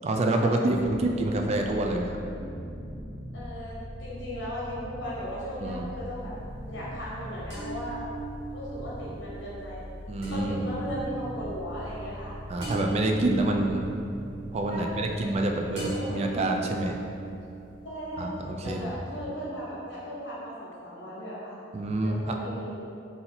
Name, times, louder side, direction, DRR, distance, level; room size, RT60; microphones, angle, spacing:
voice 1, 0.0-2.2 5.6-5.9 10.1-10.6 12.5-13.9 14.5-17.0 18.2-18.9 21.7-22.4, right 2 dB, 35° right, 2 dB, 0.3 m, -27 dB
sound 1, 0.6-19.7, equal, 55° left, 0.9 m, -42 dB
voice 2, 3.3-6.4 6.7-8.0 8.5-9.8 10.3-12.4 14.7-15.3 15.6-16.6 17.8-18.3 18.6-21.6 22.0-22.8, equal, 70° left, -7 dB, 1.3 m, -37 dB
sound 2, 5.0-5.9 7.5-15.4 15.8-17.9, right 3 dB, 70° right, 1.5 m, -39 dB
4.0 x 2.7 x 4.2 m, 2.5 s
head